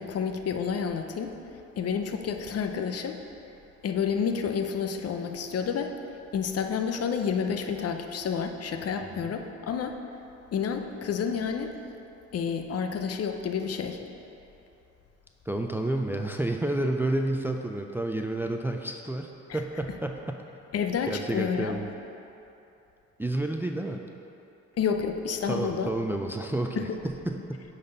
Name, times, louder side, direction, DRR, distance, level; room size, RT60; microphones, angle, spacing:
voice 1, 0.0-1.3 1.8-3.2 3.8-5.9 6.3-10.0 10.5-11.7 12.3-14.0 20.7-21.8 24.8-25.9 26.8-27.0, left 6 dB, 55° left, 6 dB, 0.6 m, -29 dB
voice 2, 15.5-20.4 21.1-21.9 23.2-24.0 25.5-27.6, right 1 dB, 5° right, 4 dB, 0.3 m, -30 dB
8.6 x 4.1 x 5.3 m, 2.9 s
cardioid pair, 90°, 30 cm